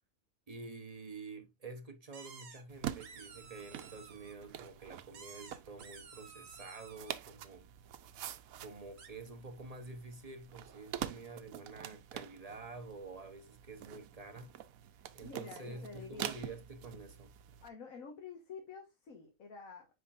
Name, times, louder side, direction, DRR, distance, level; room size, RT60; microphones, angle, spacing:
voice 1, 0.5-7.7 8.6-14.5 15.1-17.4, right 3 dB, 30° right, 1.0 m, -48 dB
sound 1, 2.1-2.6 3.0-4.3 5.1-7.1 9.0-9.1, right 6 dB, 70° right, 1.5 m, -53 dB
sound 2, 2.7-17.7, right 10 dB, 85° right, 1.1 m, -47 dB
voice 2, 14.9-16.6 17.6-19.9, left 5 dB, 80° left, 1.7 m, -49 dB
9.4 x 4.5 x 2.5 m
omnidirectional pair, 1.4 m